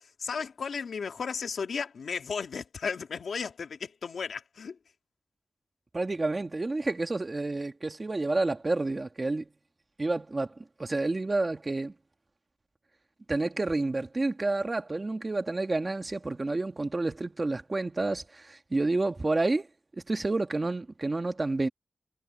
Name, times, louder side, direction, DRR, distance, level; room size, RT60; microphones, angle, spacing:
voice 1, 0.0-4.8, left 5 dB, 90° left, 2.1 m, -35 dB
voice 2, 5.9-9.5 10.0-11.9 13.3-19.7 19.9-21.7, right 2 dB, 30° right, 1.6 m, -29 dB
wide cardioid pair, 105°, 0 cm